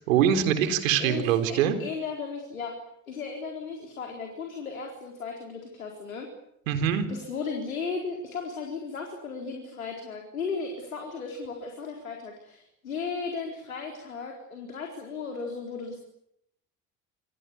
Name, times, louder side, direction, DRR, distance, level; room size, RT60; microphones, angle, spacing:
voice 1, 0.1-1.7 6.7-7.1, right 9 dB, 75° right, 8 dB, 4.0 m, -23 dB
voice 2, 1.0-2.7 3.1-6.3 7.1-16.0, left 5 dB, 85° left, 2 dB, 4.4 m, -35 dB
29.0 x 26.5 x 7.1 m, 0.76 s
hypercardioid pair, 60°, 40 cm